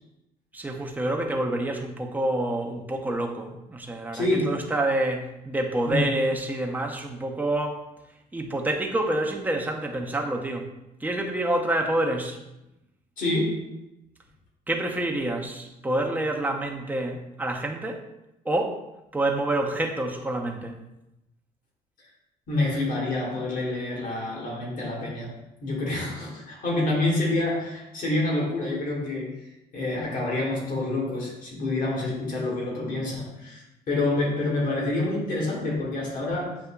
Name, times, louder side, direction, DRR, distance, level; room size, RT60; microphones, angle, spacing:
voice 1, 0.5-7.8 8.3-10.7 11.0-12.4 14.7-18.0 18.4-18.8 19.1-20.8, right 1 dB, 10° right, 1 dB, 0.6 m, -27 dB
voice 2, 4.1-4.5 5.8-6.1 13.2-13.6 22.5-25.3 25.6-29.3 29.7-36.6, left 2 dB, 50° left, -2 dB, 1.6 m, -27 dB
7.9 x 2.7 x 2.2 m, 0.92 s
cardioid pair, 110°, 17 cm